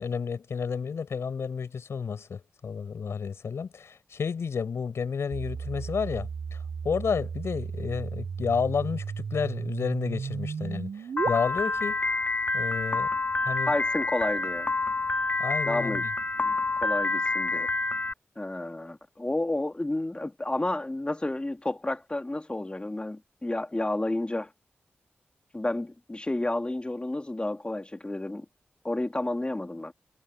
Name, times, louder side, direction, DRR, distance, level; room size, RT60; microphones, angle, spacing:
voice 1, 0.0-6.6 6.8-12.0 12.5-13.1 13.4-13.8 15.4-16.1, left 6 dB, 85° left, 7.1 m, -31 dB
sound 1, 5.3-11.3, right 6 dB, 85° right, 6.3 m, -34 dB
Piano, 11.2-18.1, left 3 dB, 40° left, 4.8 m, -28 dB
voice 2, 13.7-14.7 15.7-16.1 16.4-17.7 18.4-24.5 25.5-28.5 28.8-29.9, left 1 dB, 25° left, 3.8 m, -31 dB
cardioid pair, 55°, 4 cm